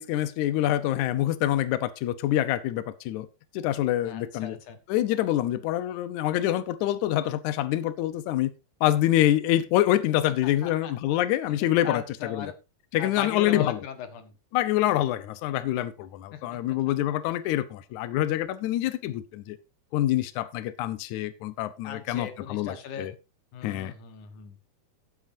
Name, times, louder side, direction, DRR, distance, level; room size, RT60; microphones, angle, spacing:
voice 1, 0.0-3.3 3.5-4.6 4.9-8.5 8.8-12.5 12.9-13.8 14.5-19.6 19.9-23.1 23.6-23.9, left 13 dB, 90° left, 1.7 m, -26 dB
voice 2, 4.0-4.8 10.4-10.9 11.5-12.5 13.0-14.3 16.3-16.6 21.8-23.1 23.5-24.6, left 7 dB, 60° left, 2.6 m, -38 dB
17.5 x 8.2 x 2.7 m
omnidirectional pair, 4.5 m